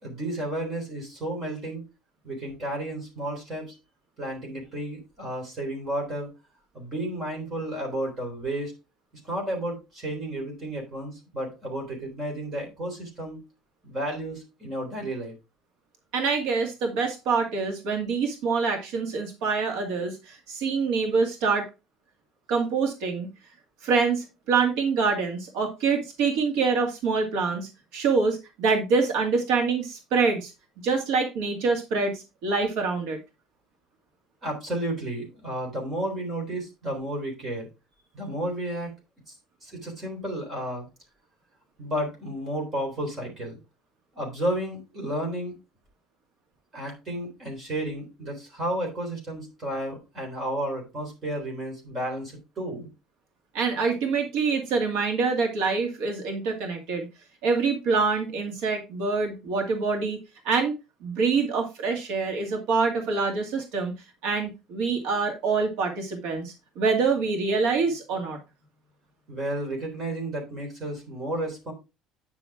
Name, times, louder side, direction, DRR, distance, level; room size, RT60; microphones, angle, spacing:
voice 1, 0.0-1.8 2.2-3.7 4.2-6.3 6.7-8.7 9.2-13.4 13.8-15.3 34.4-37.7 38.1-38.9 39.3-39.4 39.6-40.9 41.8-43.6 44.1-45.6 46.7-52.9 69.3-71.7, right 1 dB, 20° right, 0 dB, 3.7 m, -32 dB
voice 2, 16.1-21.7 22.5-23.3 23.8-30.5 30.8-33.2 53.5-57.1 57.4-60.2 60.4-60.7 61.0-63.9 64.2-68.4, right 4 dB, 70° right, 2 dB, 2.2 m, -25 dB
9.6 x 6.1 x 3.6 m, 0.27 s
cardioid pair, 180°, 0 cm